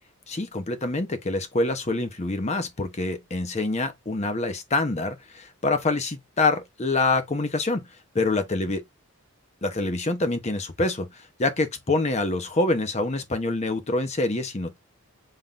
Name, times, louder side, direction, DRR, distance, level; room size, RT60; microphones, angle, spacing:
voice 1, 0.3-7.9 8.1-8.8 9.6-14.8, left 2 dB, 30° left, 0.7 m, -26 dB
5.4 x 3.7 x 2.4 m
head